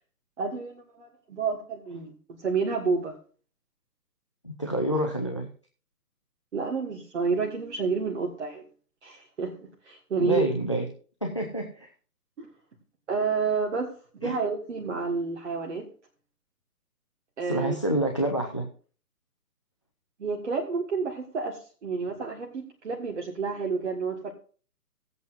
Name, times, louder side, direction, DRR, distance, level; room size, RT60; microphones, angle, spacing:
voice 1, 0.4-3.2 6.5-8.7 9.0-10.5 12.4-12.5 13.1-15.9 17.4-17.8 20.2-24.3, right 5 dB, 45° right, 0 dB, 1.8 m, -30 dB
voice 2, 4.4-5.5 10.2-10.9 11.2-11.9 14.2-14.3 17.4-18.7, right 1 dB, 20° left, 3 dB, 0.5 m, -28 dB
17.5 x 8.1 x 2.6 m, 0.40 s
figure-of-eight pair, 135°, 47 cm